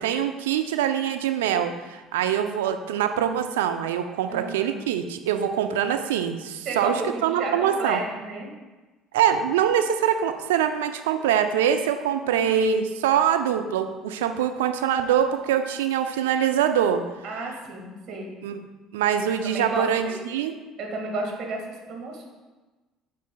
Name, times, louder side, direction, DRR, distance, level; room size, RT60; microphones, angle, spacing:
voice 1, 0.0-8.0 9.1-17.0 18.4-18.6 18.9-20.5, right 9 dB, 80° right, 7 dB, 0.5 m, -24 dB
voice 2, 4.3-4.7 6.6-8.5 12.2-12.7 17.2-18.3 19.4-20.1 20.8-21.6 21.9-22.3, right 2 dB, 55° right, 1 dB, 1.8 m, -32 dB
9.4 x 6.8 x 2.3 m, 1.2 s
hypercardioid pair, 60°, 0 cm